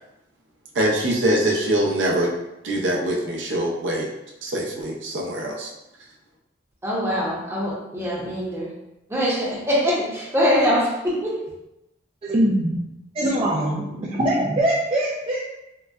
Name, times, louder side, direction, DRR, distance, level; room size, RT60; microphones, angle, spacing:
voice 1, 0.7-2.3 2.6-4.1 4.4-5.7, right 1 dB, 75° right, -2 dB, 0.6 m, -23 dB
voice 2, 6.8-8.7 9.1-11.4, equal, 15° right, -6 dB, 0.7 m, -23 dB
voice 3, 12.2-12.8 13.1-15.4, right 1 dB, 30° right, -5 dB, 0.3 m, -22 dB
3.8 x 2.1 x 2.3 m, 0.91 s
head